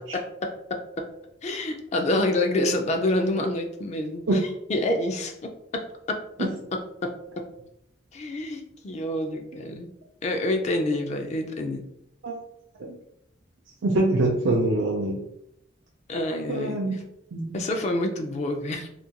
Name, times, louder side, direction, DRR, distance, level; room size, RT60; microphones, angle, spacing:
voice 1, 0.1-1.1 1.4-4.3 4.7-7.4 8.1-9.9 10.2-11.8 16.1-16.8 17.5-18.9, left 1 dB, 35° left, 4 dB, 0.3 m, -28 dB
voice 2, 13.8-15.2 16.5-17.0 17.3-17.6, right 2 dB, 90° right, -2 dB, 0.4 m, -24 dB
2.4 x 2.2 x 2.7 m, 0.78 s
head